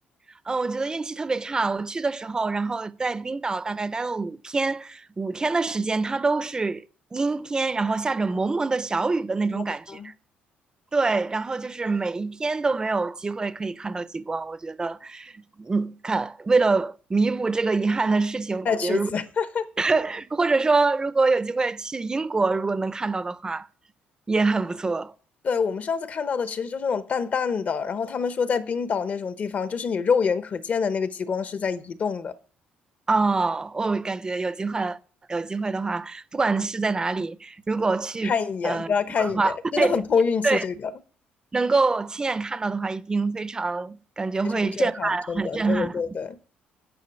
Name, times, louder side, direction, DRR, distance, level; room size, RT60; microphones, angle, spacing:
voice 1, 0.5-6.8 7.1-10.1 10.9-19.1 19.8-23.7 24.3-25.1 33.1-35.0 35.3-38.3 38.6-38.9 39.2-40.0 40.4-40.6 41.5-46.2, right 3 dB, 20° right, 0.6 m, -25 dB
voice 2, 18.7-19.7 25.4-32.3 38.2-40.9 44.4-46.4, left 6 dB, 40° left, 0.9 m, -26 dB
10.5 x 5.5 x 7.3 m
cardioid pair, 115°, 4 cm